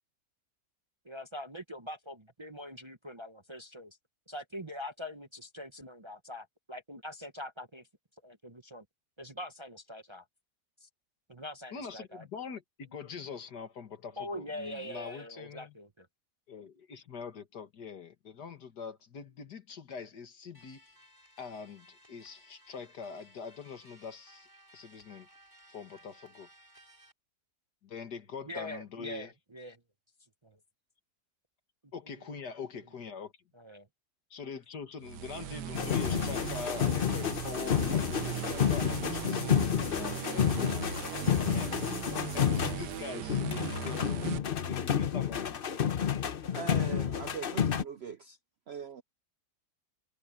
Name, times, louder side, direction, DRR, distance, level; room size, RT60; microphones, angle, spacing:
voice 1, 1.0-4.0 4.3-7.9 8.2-8.8 9.2-10.2 10.8-10.9 11.3-12.3 14.2-16.1 28.4-29.7 33.5-33.9, left 1 dB, 20° right, 0.8 m, -43 dB
voice 2, 11.7-15.7 16.5-20.8 21.4-24.5 24.7-25.3 25.7-26.5 27.8-29.3 31.9-33.3 34.3-40.9 41.5-41.8 42.2-44.3 44.6-45.6, left 6 dB, 75° left, 2.3 m, -44 dB
sound 1, 20.5-27.1, equal, 10° left, 6.6 m, -59 dB
sound 2, 35.0-44.4, right 12 dB, 80° right, 1.4 m, -39 dB
sound 3, 35.7-43.0 43.3-47.8, left 8 dB, 45° left, 0.8 m, -30 dB
voice 3, 46.5-48.4 48.7-49.0, right 7 dB, 65° right, 0.6 m, -41 dB
omnidirectional pair, 1.8 m